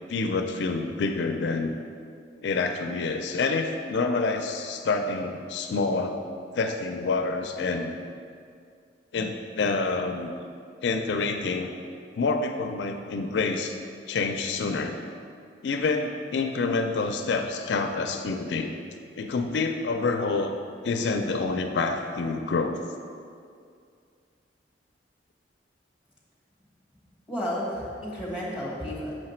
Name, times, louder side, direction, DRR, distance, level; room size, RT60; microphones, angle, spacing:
voice 1, 0.1-1.7 2.4-6.2 6.5-7.9 9.1-10.3 10.8-11.7 12.2-13.8 14.1-14.9 15.6-18.7 19.2-20.5 20.8-22.8, left 3 dB, 70° left, 5 dB, 0.4 m, -27 dB
voice 2, 27.3-29.2, equal, 5° right, -7 dB, 1.6 m, -32 dB
6.4 x 4.9 x 4.3 m, 2.3 s
head